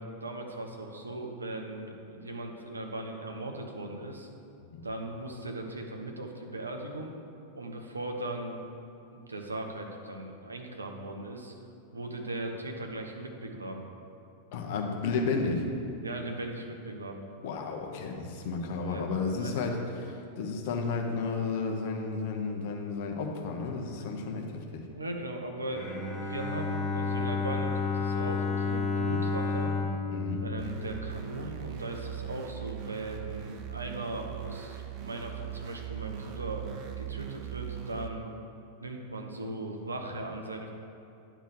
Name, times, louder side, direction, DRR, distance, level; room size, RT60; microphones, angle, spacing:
voice 1, 0.0-4.3 4.8-7.1 7.5-8.6 9.1-11.5 11.9-13.8 16.0-17.3 18.9-19.1 19.4-19.5 24.9-29.7 30.4-36.7 37.0-38.4 38.8-40.7, right 2 dB, 80° right, 3 dB, 0.8 m, -38 dB
voice 2, 14.5-15.7 17.4-24.8 30.1-30.4, left 4 dB, 50° left, 1 dB, 1.0 m, -32 dB
Bowed string instrument, 25.7-31.7, left 4 dB, 15° left, 1.6 m, -31 dB
sound 1, 30.6-38.1, right 11 dB, 40° right, 0.5 m, -40 dB
9.8 x 3.4 x 6.3 m, 2.6 s
figure-of-eight pair, 90°, 0 cm